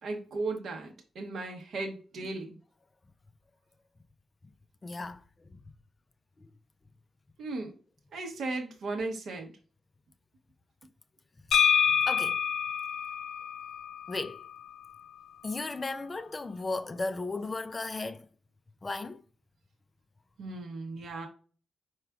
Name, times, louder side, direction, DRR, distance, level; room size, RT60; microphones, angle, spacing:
voice 1, 0.0-2.6 7.4-7.7 8.1-9.5 20.4-21.3, right 3 dB, 70° right, 0.9 m, -36 dB
voice 2, 4.8-5.2 5.5-5.6 6.4-6.5 11.9-12.4 14.1-14.4 15.4-18.3 18.8-19.2, left 3 dB, 25° left, 0.4 m, -35 dB
sound 1, 11.5-15.3, left 7 dB, 90° left, 0.4 m, -28 dB
4.8 x 4.6 x 2.3 m
wide cardioid pair, 125°, 0 cm